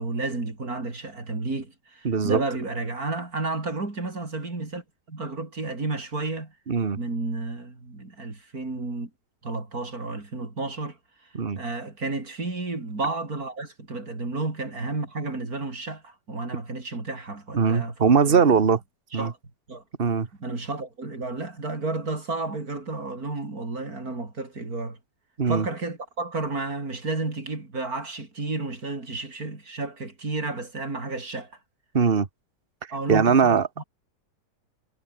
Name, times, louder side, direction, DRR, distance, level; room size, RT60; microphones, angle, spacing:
voice 1, 0.0-6.5 7.0-9.1 9.4-11.0 11.6-18.7 19.1-19.4 19.7-19.8 20.4-25.0 25.5-31.5 32.9-33.8, right 3 dB, 60° right, 5.1 m, -32 dB
voice 2, 2.0-2.4 6.7-7.0 11.3-11.6 17.5-18.8 19.1-19.3 20.0-20.3 25.4-25.6 31.9-32.3 33.1-33.8, right 6 dB, 35° right, 1.7 m, -20 dB
omnidirectional pair, 1.8 m